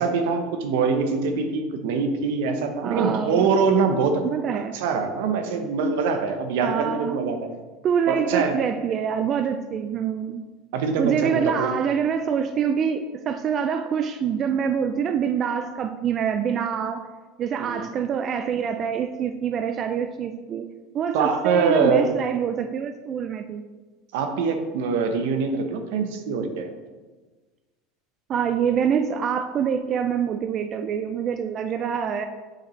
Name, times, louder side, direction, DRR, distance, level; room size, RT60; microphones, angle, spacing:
voice 1, 0.0-4.2 4.5-7.4 8.1-8.6 10.7-11.7 17.6-17.8 21.1-22.1 24.1-26.7, right 5 dB, 75° right, 7 dB, 0.8 m, -23 dB
voice 2, 2.8-3.5 4.2-4.8 6.6-7.2 7.8-10.4 11.0-17.0 17.4-20.7 20.9-23.6 28.3-32.3, right 7 dB, 35° right, 8 dB, 0.3 m, -25 dB
7.3 x 5.1 x 3.2 m, 1.3 s
supercardioid pair, 145°, 0 cm